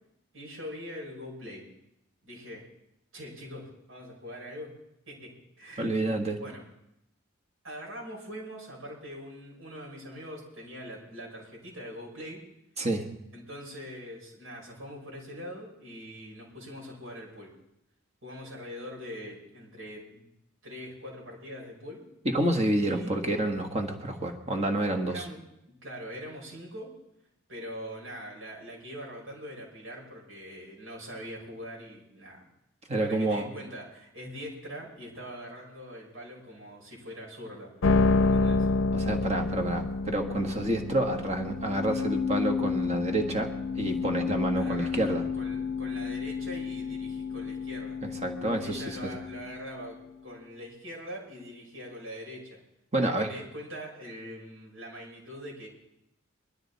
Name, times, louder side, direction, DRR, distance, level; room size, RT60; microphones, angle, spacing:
voice 1, 0.3-1.7 2.2-2.6 3.1-4.7 5.1-6.0 6.4-6.6 7.6-12.4 13.3-17.5 18.2-20.3 20.6-22.0 22.8-23.4 25.1-25.4 25.8-26.9 27.5-32.4 33.0-37.7 38.2-38.7 44.5-48.0 48.6-52.6 53.0-55.7, equal, 80° right, -3 dB, 5.8 m, -43 dB
voice 2, 5.8-6.4 12.8-13.1 22.3-25.3 32.9-33.5 38.9-45.3 48.0-49.1 52.9-53.3, right 1 dB, 35° right, 4 dB, 1.6 m, -29 dB
sound 1, 37.8-50.1, left 4 dB, 80° left, 0.5 m, -29 dB
21.5 x 12.5 x 4.2 m, 0.82 s
head